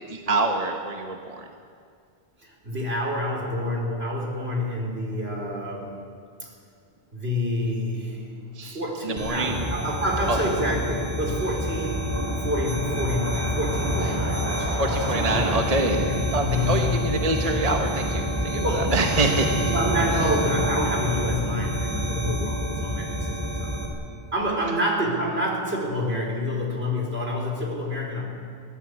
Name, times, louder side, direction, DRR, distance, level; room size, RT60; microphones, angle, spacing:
voice 1, 0.1-1.5 8.5-9.7 10.3-10.4 14.0-14.2 14.8-19.5, right 2 dB, 35° right, 3 dB, 1.3 m, -26 dB
voice 2, 2.4-6.0 6.4-6.5 7.1-8.2 8.7-12.1 12.4-15.6 16.0-16.9 18.5-19.1 19.5-23.1 23.6-23.8 24.3-28.3, left 1 dB, 70° right, -1 dB, 4.7 m, -28 dB
sound 1, 8.1-8.2 8.4-8.5 8.8-15.6, right 1 dB, 15° left, 6.1 m, -36 dB
sound 2, 9.2-23.9, equal, 15° right, 4.1 m, -27 dB
22.5 x 17.0 x 8.2 m, 2.3 s
omnidirectional pair, 1.1 m